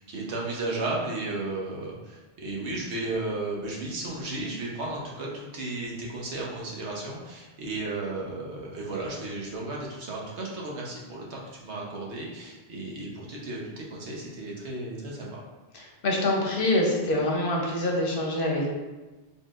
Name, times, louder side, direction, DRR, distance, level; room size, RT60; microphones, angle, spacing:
voice 1, 0.0-15.4, right 2 dB, 75° right, -3 dB, 1.1 m, -34 dB
voice 2, 15.7-18.7, left 1 dB, 55° left, -1 dB, 0.8 m, -25 dB
4.2 x 3.5 x 2.4 m, 1.2 s
omnidirectional pair, 1.2 m